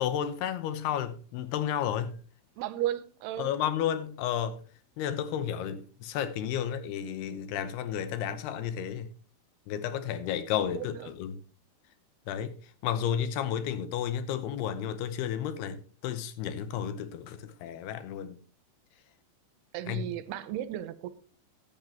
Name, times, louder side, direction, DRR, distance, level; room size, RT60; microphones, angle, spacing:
voice 1, 0.0-2.2 3.4-4.6 5.0-9.1 9.7-11.4 12.3-12.6 12.8-18.4 19.9-20.1, left 9 dB, 85° left, 2.9 m, -32 dB
voice 2, 2.6-3.5 19.7-21.1, right 13 dB, 85° right, 2.7 m, -34 dB
15.0 x 10.5 x 2.9 m
omnidirectional pair, 4.7 m